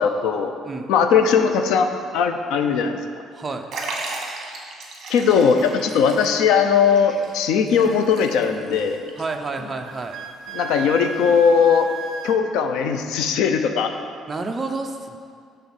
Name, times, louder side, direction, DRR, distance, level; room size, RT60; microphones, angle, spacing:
voice 1, 0.0-0.5 0.9-3.0 5.1-9.0 10.5-11.9 12.2-13.9, left 6 dB, 80° left, 7 dB, 0.7 m, -19 dB
voice 2, 3.3-3.7 9.2-10.2 14.3-15.2, right 3 dB, 20° right, 4 dB, 0.7 m, -29 dB
Liquid, 3.7-8.8 9.1-9.2 10.1-10.2, right 3 dB, 45° right, 1.7 m, -35 dB
sound 1, 6.1-11.5, left 2 dB, 45° left, 2.5 m, -43 dB
Wind instrument woodwind instrument, 9.8-12.4, right 4 dB, 60° right, 0.5 m, -34 dB
10.5 x 4.0 x 7.3 m, 2.2 s
cardioid pair, 145°, 0 cm